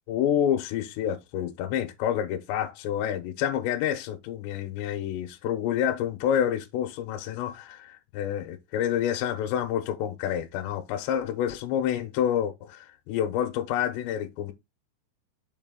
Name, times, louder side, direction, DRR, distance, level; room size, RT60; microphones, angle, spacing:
voice 1, 0.1-14.5, left 10 dB, 80° left, 3.1 m, -28 dB
6.6 x 4.8 x 3.8 m
omnidirectional pair, 5.2 m